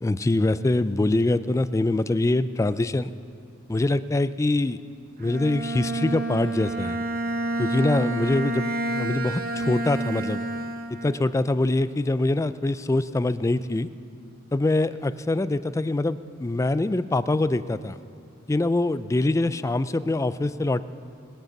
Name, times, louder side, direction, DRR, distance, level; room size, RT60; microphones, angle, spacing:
voice 1, 0.0-3.1 3.7-4.8 5.2-7.0 7.6-10.4 10.9-13.9 14.5-18.0 18.5-20.9, left 2 dB, 15° left, 14 dB, 0.3 m, -24 dB
Bowed string instrument, 5.2-11.3, right 2 dB, 45° right, 0.9 m, -29 dB
20.0 x 7.9 x 7.1 m, 2.3 s
head